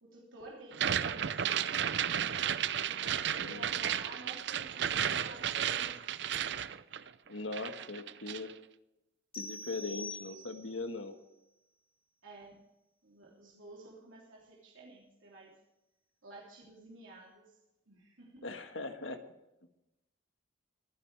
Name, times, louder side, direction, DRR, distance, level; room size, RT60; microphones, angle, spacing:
voice 1, 0.0-2.4 2.9-6.0 12.2-12.6 13.0-15.6 16.2-17.5 17.9-18.5, right 2 dB, 85° right, -3 dB, 3.2 m, -51 dB
sound 1, 0.7-7.3 7.5-8.5, right 9 dB, 60° right, 0.5 m, -33 dB
voice 2, 7.3-8.5 9.4-11.2 18.4-19.2, left 3 dB, 85° left, 7 dB, 1.5 m, -40 dB
sound 2, 9.3-10.9, left 2 dB, 25° left, 3.1 m, -44 dB
22.5 x 10.5 x 3.4 m, 0.92 s
head